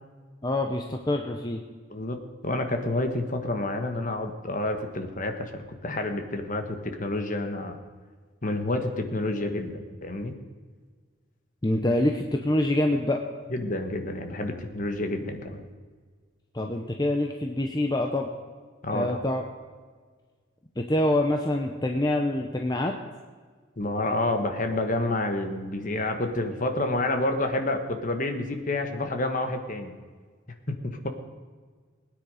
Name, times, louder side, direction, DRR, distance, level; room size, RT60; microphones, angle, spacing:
voice 1, 0.4-1.6 11.6-13.2 16.5-18.3 18.9-19.4 20.8-22.9, left 1 dB, 20° left, 3 dB, 0.8 m, -25 dB
voice 2, 2.4-7.8 8.4-10.3 13.5-15.7 18.8-19.2 23.8-29.9 30.7-31.1, left 2 dB, 40° left, 6 dB, 1.5 m, -29 dB
21.0 x 9.7 x 5.0 m, 1.5 s
head